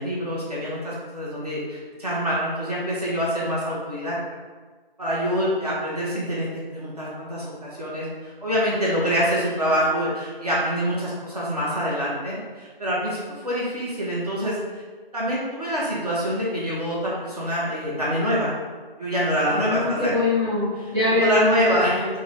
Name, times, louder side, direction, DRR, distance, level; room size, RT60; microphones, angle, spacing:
voice 1, 0.0-4.2 5.0-13.2 13.4-14.8 15.1-18.5 19.0-20.1 21.1-22.0, equal, 40° right, -7 dB, 0.9 m, -25 dB
voice 2, 19.5-22.2, left 2 dB, 5° left, -16 dB, 0.9 m, -23 dB
3.7 x 2.7 x 3.0 m, 1.4 s
figure-of-eight pair, 170°, 30 cm